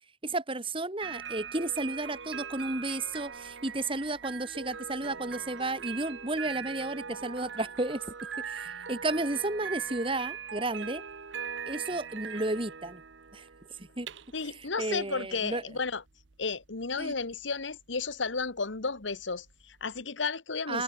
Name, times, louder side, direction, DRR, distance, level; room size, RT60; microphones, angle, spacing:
voice 1, 0.2-8.0 8.4-11.0 11.7-13.0 13.3-13.5 13.8-14.1 14.4-15.6 17.0-17.1 20.7-20.8, right 2 dB, 30° right, 2.4 m, -33 dB
sound 1, 1.0-20.0, right 6 dB, 75° right, 1.0 m, -41 dB
voice 2, 14.3-16.0 16.4-20.8, left 4 dB, 75° left, 1.5 m, -33 dB
head